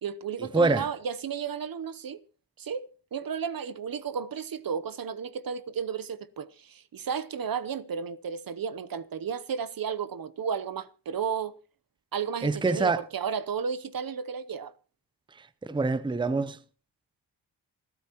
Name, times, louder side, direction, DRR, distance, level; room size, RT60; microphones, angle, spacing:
voice 1, 0.0-2.2 2.6-2.9 3.1-11.5 12.1-14.7, right 7 dB, 50° right, 0.8 m, -33 dB
voice 2, 0.5-0.9 12.4-13.0 15.6-16.6, right 3 dB, 10° right, 0.7 m, -25 dB
27.5 x 9.5 x 3.0 m
supercardioid pair, 50°, 45 cm